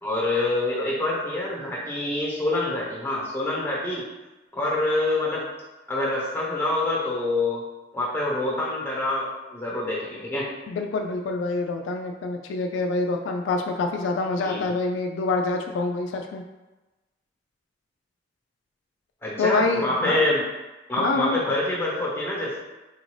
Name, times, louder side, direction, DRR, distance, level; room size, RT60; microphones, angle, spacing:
voice 1, 0.0-4.0 4.5-5.4 5.9-7.6 7.9-10.5 14.4-14.7 19.2-20.4 20.9-22.6, left 2 dB, 10° left, -5 dB, 0.9 m, -26 dB
voice 2, 10.7-16.4 19.4-20.3 21.0-21.4, left 3 dB, 80° left, 3 dB, 0.3 m, -26 dB
4.2 x 2.6 x 3.1 m, 1.1 s
head